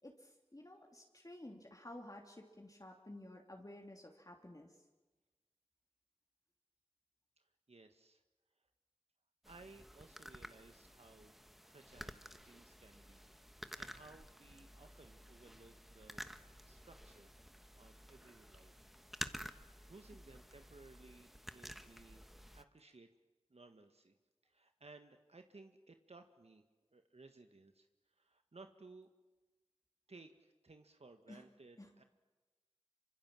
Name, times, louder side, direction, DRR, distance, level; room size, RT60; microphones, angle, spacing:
voice 1, 0.0-4.8 31.3-31.4 31.8-31.9, left 1 dB, 35° left, 1 dB, 2.9 m, -53 dB
voice 2, 7.4-8.2 9.5-11.3 11.6-13.2 13.8-16.3 16.6-18.9 19.9-22.2 22.5-23.1 23.5-24.1 24.4-26.6 26.9-29.1 30.1-32.0, right 3 dB, 80° right, 6 dB, 1.5 m, -60 dB
sound 1, 9.4-22.6, equal, ahead, 1.2 m, -52 dB
26.0 x 25.0 x 7.6 m, 1.2 s
wide cardioid pair, 40°, 11 cm